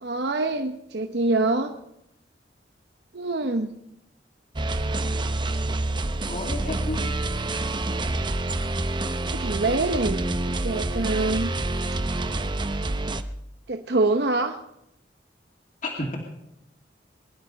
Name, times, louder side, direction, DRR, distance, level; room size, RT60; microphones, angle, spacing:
voice 1, 0.0-1.7 3.1-3.8 9.3-11.5 13.7-14.6, right 2 dB, 70° right, 5 dB, 0.9 m, -26 dB
sound 1, 4.6-13.2, right 2 dB, 25° right, 0.7 m, -27 dB
voice 2, 6.3-7.1 15.8-16.2, left 1 dB, 50° left, 0 dB, 2.5 m, -31 dB
22.5 x 11.0 x 5.3 m, 0.82 s
head